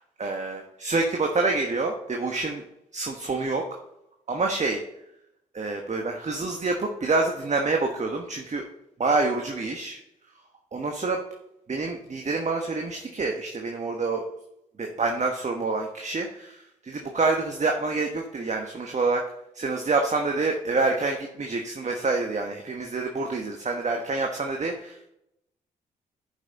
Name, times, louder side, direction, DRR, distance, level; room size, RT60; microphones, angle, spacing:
voice 1, 0.2-2.6 2.9-3.6 4.3-4.8 5.5-8.6 9.0-10.0 10.7-11.2 11.7-14.2 14.8-19.2 19.5-25.1, right 3 dB, 40° right, 2 dB, 1.3 m, -27 dB
11.5 x 5.6 x 3.8 m, 0.83 s
hypercardioid pair, 40°, 19 cm